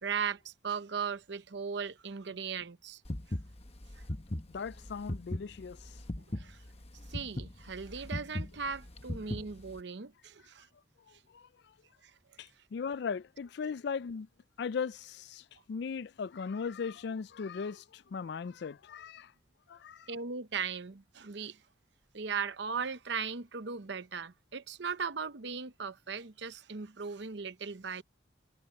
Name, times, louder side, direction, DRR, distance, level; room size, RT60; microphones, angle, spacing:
voice 1, 0.0-3.0 6.3-6.6 7.1-10.7 13.6-13.7 20.1-21.6 22.1-28.0, right 6 dB, 60° right, 0.8 m, -38 dB
sound 1, 3.0-9.8, left 1 dB, 30° left, 1.1 m, -38 dB
voice 2, 4.5-5.9 11.3-11.5 12.4-14.3 14.6-19.3 19.7-20.1, left 5 dB, 60° left, 0.4 m, -38 dB
head